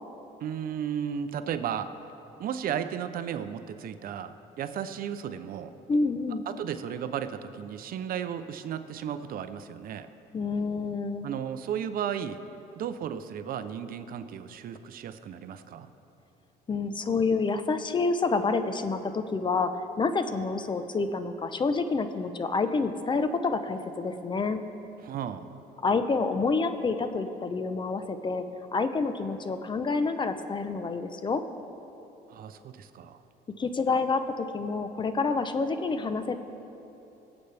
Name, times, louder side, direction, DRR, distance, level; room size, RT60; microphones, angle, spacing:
voice 1, 0.4-1.9 2.4-5.7 6.5-10.1 11.2-12.4 12.8-15.9 25.0-25.5 32.3-33.2, right 8 dB, 60° right, 10 dB, 0.7 m, -34 dB
voice 2, 5.9-6.4 10.3-11.3 16.7-19.7 20.0-24.6 25.8-28.4 28.7-31.4 33.6-36.4, left 4 dB, 30° left, 9 dB, 0.7 m, -28 dB
23.5 x 8.1 x 3.4 m, 3.0 s
cardioid pair, 110°, 17 cm